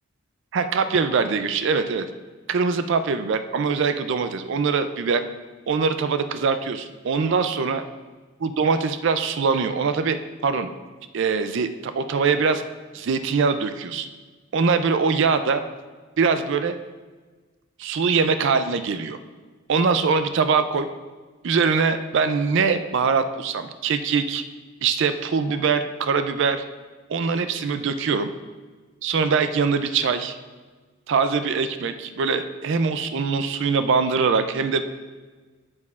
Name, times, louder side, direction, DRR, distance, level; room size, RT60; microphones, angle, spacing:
voice 1, 0.5-2.1 2.5-5.2 5.7-7.8 8.4-10.7 11.1-12.6 12.9-14.1 14.5-15.6 16.2-16.8 17.8-19.2 19.7-20.9 21.4-24.4 24.8-26.6 27.1-28.3 29.0-30.4 31.1-34.8, right 5 dB, 60° right, 10 dB, 0.4 m, -22 dB
8.8 x 8.3 x 2.4 m, 1.4 s
head